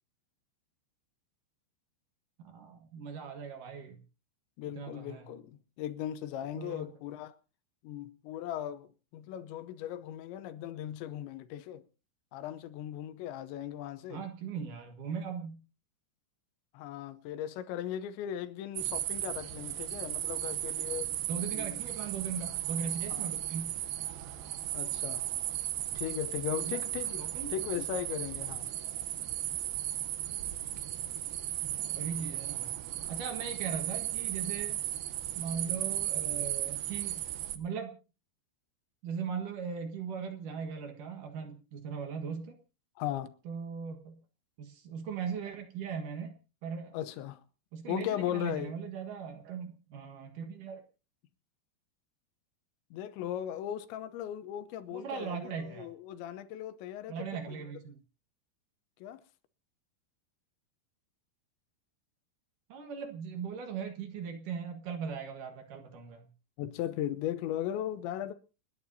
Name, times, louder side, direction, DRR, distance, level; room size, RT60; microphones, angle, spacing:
voice 1, 2.4-4.0 4.8-5.3 6.6-6.9 14.1-15.6 21.2-23.7 26.6-26.8 27.2-27.5 31.6-32.8 33.1-34.8 35.3-37.3 37.5-37.9 39.0-42.6 43.5-44.2 44.6-47.0 47.7-50.8 54.9-55.9 57.1-58.0 62.7-66.3, right 6 dB, 60° right, 2.4 m, -39 dB
voice 2, 4.6-7.3 7.8-11.8 12.3-14.3 16.7-21.1 21.5-21.8 23.1-23.3 24.7-25.3 26.0-27.2 27.5-28.7 43.0-43.3 46.9-47.4 47.9-48.7 52.9-57.5 59.0-59.2 66.6-68.3, left 11 dB, 75° left, 3.0 m, -37 dB
sound 1, 18.8-37.6, right 13 dB, 75° right, 2.2 m, -35 dB
29.5 x 10.5 x 2.7 m
omnidirectional pair, 5.6 m